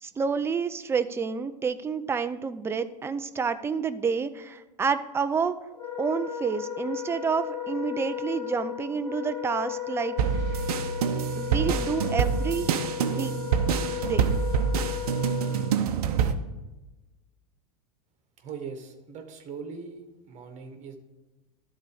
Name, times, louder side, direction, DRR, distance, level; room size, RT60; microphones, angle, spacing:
voice 1, 0.0-5.5 6.0-10.1 10.5-10.6 11.4-12.7 13.0-13.3 14.0-14.4, right 5 dB, 10° right, 11 dB, 0.4 m, -29 dB
Wind instrument woodwind instrument, 5.7-15.8, left 10 dB, 20° left, 1.8 m, -35 dB
sound 1, 10.2-16.3, right 7 dB, 65° right, 0.7 m, -26 dB
voice 2, 18.4-21.0, right 5 dB, 35° right, 6 dB, 1.4 m, -40 dB
12.0 x 4.1 x 4.9 m, 1.1 s
figure-of-eight pair, 90°, 21 cm